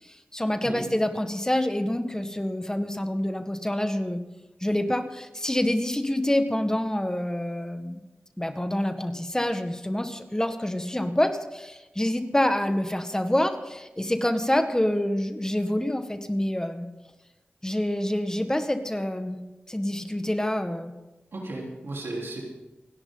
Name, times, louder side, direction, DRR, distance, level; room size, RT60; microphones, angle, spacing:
voice 1, 0.1-4.2 4.6-8.0 8.4-16.9 17.6-19.4 19.7-20.9, left 1 dB, 15° left, 7 dB, 1.7 m, -27 dB
voice 2, 21.3-22.4, right 2 dB, 85° right, -2 dB, 4.1 m, -34 dB
28.5 x 10.5 x 4.0 m, 1.0 s
cardioid pair, 45°, 4 cm